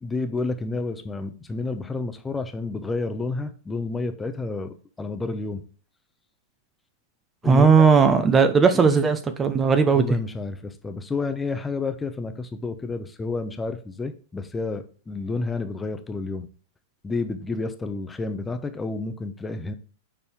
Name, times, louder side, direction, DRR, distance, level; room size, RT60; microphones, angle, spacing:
voice 1, 0.0-5.6 7.4-7.9 8.7-9.0 9.9-16.5 17.0-19.7, left 3 dB, 15° left, 0.9 m, -30 dB
voice 2, 7.4-10.1, right 5 dB, 20° right, 0.9 m, -17 dB
6.9 x 5.4 x 3.5 m
hypercardioid pair, 105°, 0 cm